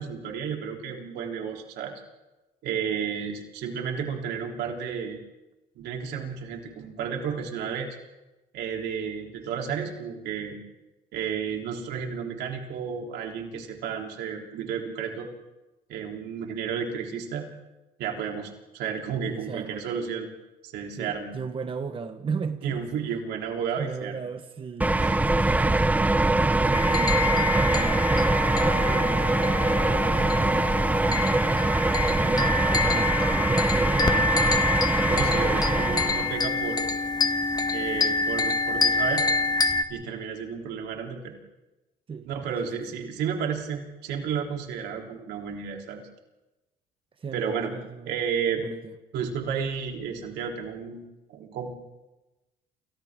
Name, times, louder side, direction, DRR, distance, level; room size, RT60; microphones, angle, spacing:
voice 1, 0.0-2.0 2.6-5.2 5.8-8.0 8.5-10.6 11.1-15.3 15.9-17.5 18.0-20.3 20.6-21.3 22.6-24.2 25.0-25.2 35.0-36.8 37.7-39.3 39.9-41.3 42.3-46.0 47.3-47.7 48.1-48.6 49.1-51.0 51.3-51.7, right 7 dB, 80° right, 1 dB, 3.6 m, -32 dB
voice 2, 19.3-19.8 21.0-22.9 23.8-28.2 28.7-31.4 32.1-34.4 42.1-43.0 47.2-48.3 48.6-48.9, right 5 dB, 30° right, 7 dB, 1.3 m, -37 dB
sound 1, 24.8-36.4, right 2 dB, 10° right, 0.7 m, -23 dB
sound 2, 26.7-39.8, left 3 dB, 25° left, 1.4 m, -27 dB
29.0 x 27.5 x 3.8 m, 1.1 s
cardioid pair, 110°, 17 cm